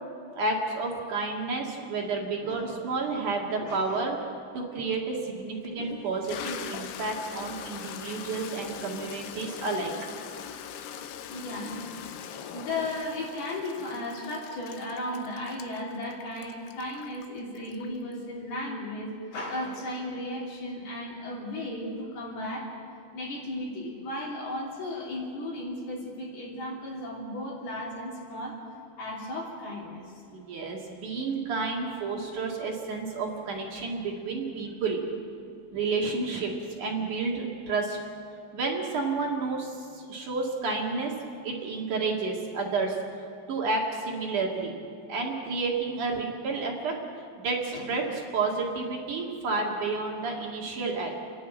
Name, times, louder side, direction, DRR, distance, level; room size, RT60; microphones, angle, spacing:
voice 1, 0.3-4.2 4.5-9.9 30.3-35.0 35.7-38.0 38.5-41.1 41.4-43.0 43.5-44.7 45.1-46.9 47.4-51.1, right 3 dB, 55° right, -1 dB, 2.9 m, -30 dB
voice 2, 2.4-2.8 3.6-4.0 11.3-11.8 12.4-22.7 23.1-28.6 29.0-30.0 47.7-48.1, left 1 dB, 60° left, -5 dB, 4.9 m, -35 dB
Toilet flush, 4.9-5.0 5.6-18.1, left 8 dB, 85° left, 3.3 m, -41 dB
29.5 x 11.0 x 9.0 m, 2.4 s
omnidirectional pair, 5.3 m